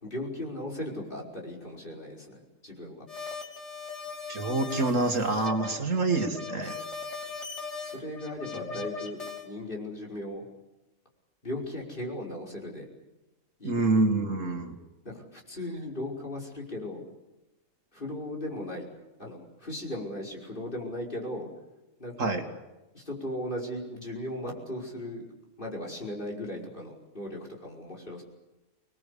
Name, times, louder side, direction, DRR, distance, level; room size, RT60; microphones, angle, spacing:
voice 1, 0.0-3.0 7.8-9.2 9.4-10.4 11.4-12.9 13.6-13.8 15.0-17.0 17.9-18.9 19.2-21.5 22.0-22.4 22.9-25.2 25.6-28.2, left 1 dB, 35° left, 1 dB, 5.7 m, -37 dB
sound 1, 3.1-9.5, left 5 dB, 50° left, 3.7 m, -39 dB
voice 2, 4.3-6.8 13.6-14.8 22.2-22.4, right 2 dB, 60° right, 5 dB, 2.6 m, -26 dB
26.0 x 21.0 x 8.5 m, 1.0 s
omnidirectional pair, 1.5 m